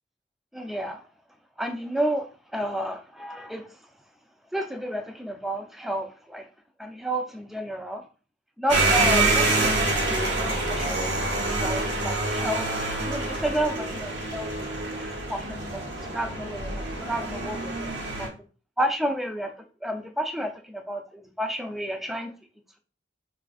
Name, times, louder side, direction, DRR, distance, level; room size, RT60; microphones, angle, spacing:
voice 1, 0.5-1.0 1.6-3.7 4.5-6.5 6.8-8.1 8.6-12.7 13.0-14.7 15.0-17.7 18.2-18.3 18.8-19.5 19.8-22.3, right 1 dB, ahead, 0.3 m, -31 dB
sound 1, 8.7-18.3, right 2 dB, 70° right, 1.0 m, -26 dB
4.1 x 2.5 x 2.3 m
head